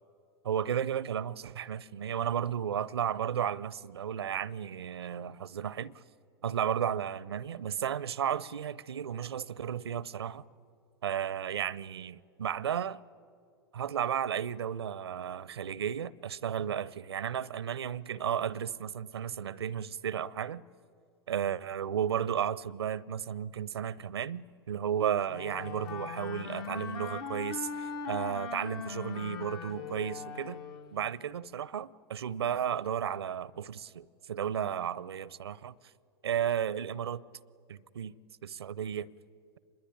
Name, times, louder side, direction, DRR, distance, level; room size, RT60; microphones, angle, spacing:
voice 1, 0.4-5.9 6.4-10.4 11.0-13.0 13.7-20.6 21.3-30.6 30.9-35.7 36.2-37.2 37.7-38.1 38.4-39.1, right 9 dB, 75° right, 0.6 m, -33 dB
Wind instrument woodwind instrument, 25.3-31.0, left 5 dB, 60° left, 1.7 m, -40 dB
26.0 x 21.5 x 10.0 m
figure-of-eight pair, 90°, 13 cm